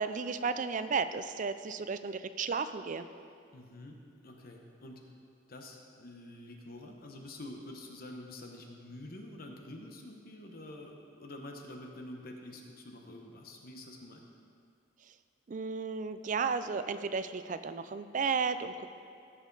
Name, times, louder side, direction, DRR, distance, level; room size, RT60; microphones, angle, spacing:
voice 1, 0.0-3.1 15.5-18.9, right 5 dB, 40° right, 11 dB, 0.4 m, -33 dB
voice 2, 3.5-5.1 5.5-14.2, left 1 dB, 50° left, 2 dB, 1.1 m, -47 dB
15.5 x 6.4 x 4.0 m, 2.4 s
head